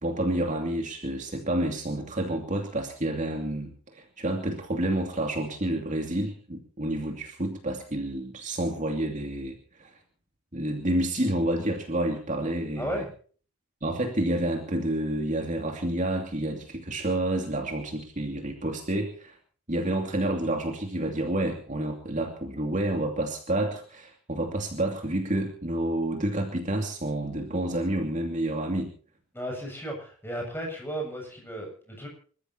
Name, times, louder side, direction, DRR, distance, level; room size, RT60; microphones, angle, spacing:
voice 1, 0.0-9.9 10.5-13.0 13.8-19.3 19.7-28.9, right 1 dB, 35° right, 3 dB, 2.6 m, -29 dB
voice 2, 12.8-13.1 29.3-32.1, right 1 dB, 10° left, 1 dB, 7.4 m, -34 dB
27.5 x 14.0 x 2.9 m, 0.42 s
head